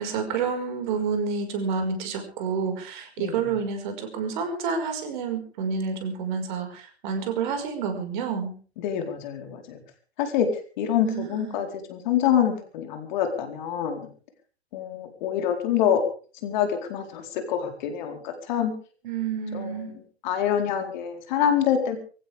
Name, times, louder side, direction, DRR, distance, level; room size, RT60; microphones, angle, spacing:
voice 1, 0.0-8.5 11.1-11.6 19.0-19.9, right 5 dB, 45° right, 6 dB, 5.5 m, -29 dB
voice 2, 8.8-9.8 10.2-14.1 14.7-16.0 16.4-18.7 19.5-22.0, left 9 dB, 45° left, 5 dB, 4.4 m, -26 dB
24.5 x 16.0 x 3.6 m, 0.39 s
hypercardioid pair, 120°, 32 cm